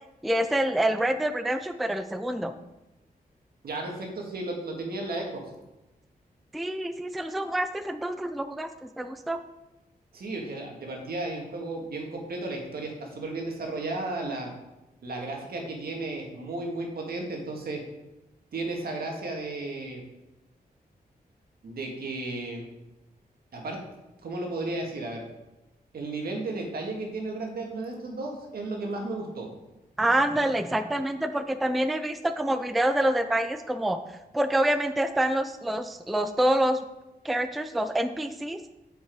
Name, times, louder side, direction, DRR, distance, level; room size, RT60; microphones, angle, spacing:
voice 1, 0.2-2.5 6.5-9.4 30.0-34.0 34.3-36.8 37.2-38.6, right 1 dB, ahead, 9 dB, 0.3 m, -26 dB
voice 2, 3.6-5.4 10.1-14.5 15.0-17.8 18.5-20.0 21.6-22.7 23.5-23.8 24.2-25.2 25.9-29.5, right 2 dB, 75° right, 1 dB, 1.7 m, -34 dB
7.5 x 5.5 x 4.6 m, 1.0 s
wide cardioid pair, 145°, 16 cm